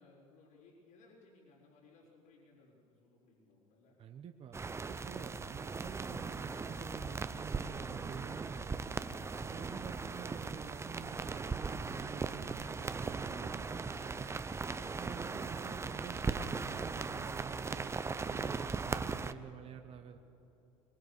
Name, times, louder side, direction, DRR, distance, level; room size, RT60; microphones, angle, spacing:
voice 1, 0.0-4.0, left 3 dB, 60° left, -8 dB, 4.8 m, -62 dB
voice 2, 4.0-4.6 4.9-9.0 9.4-14.4 14.9-17.9 18.2-20.2, right 7 dB, 35° right, 6 dB, 1.1 m, -48 dB
sound 1, 4.5-19.3, right 4 dB, 15° right, 0.7 m, -39 dB
23.0 x 19.5 x 6.6 m, 3.0 s
hypercardioid pair, 95°, 17 cm